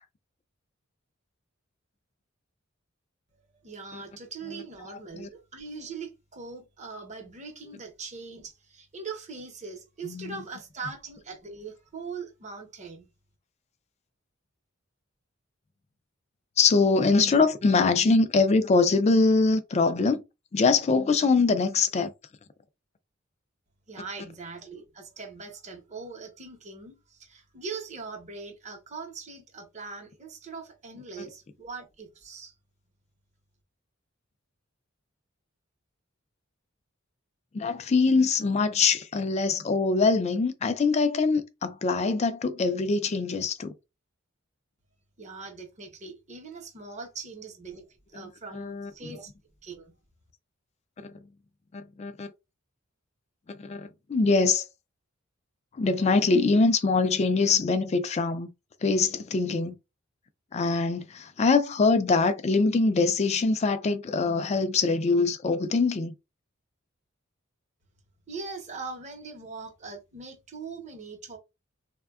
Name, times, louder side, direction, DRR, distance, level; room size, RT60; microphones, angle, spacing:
voice 1, 3.6-13.1 23.9-32.5 45.2-49.3 49.6-49.9 68.3-71.4, right 4 dB, 35° right, 0.8 m, -41 dB
voice 2, 10.0-10.4 16.6-20.2 20.5-22.1 37.5-43.7 48.5-48.9 51.7-52.3 53.5-54.6 55.8-58.5 58.8-59.7 60.5-66.1, left 4 dB, 35° left, 0.4 m, -23 dB
3.4 x 2.2 x 2.3 m
head